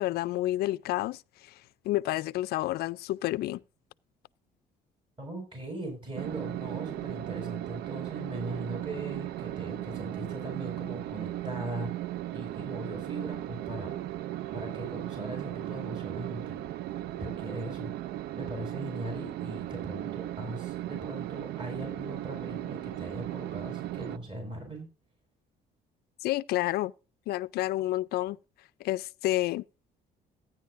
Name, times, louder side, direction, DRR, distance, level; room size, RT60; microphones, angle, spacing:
voice 1, 0.0-1.6 1.8-3.6 26.2-26.9 27.3-28.4 28.8-29.6, left 16 dB, 70° left, 0.4 m, -29 dB
voice 2, 5.2-11.9 12.3-14.0 14.5-16.7 17.2-18.0 18.3-24.9, right 1 dB, 30° right, 5.9 m, -39 dB
sound 1, 6.2-24.2, right 14 dB, 70° right, 0.4 m, -37 dB
15.0 x 9.9 x 2.5 m
cardioid pair, 110°, 17 cm